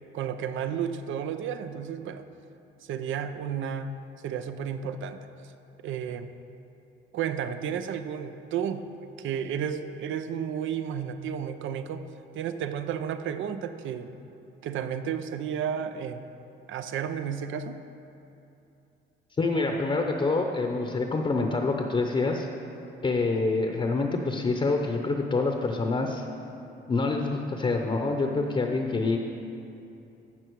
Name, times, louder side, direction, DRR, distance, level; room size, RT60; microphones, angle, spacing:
voice 1, 0.1-2.2 2.8-5.2 5.8-6.3 7.1-8.9 9.2-12.0 12.3-14.1 14.6-16.3 16.7-17.8, right 8 dB, 75° right, 9 dB, 0.6 m, -32 dB
voice 2, 19.4-22.5 23.0-26.2 26.9-29.2, left 3 dB, 25° left, 3 dB, 0.8 m, -26 dB
14.5 x 6.0 x 4.7 m, 2.8 s
cardioid pair, 90°, 20 cm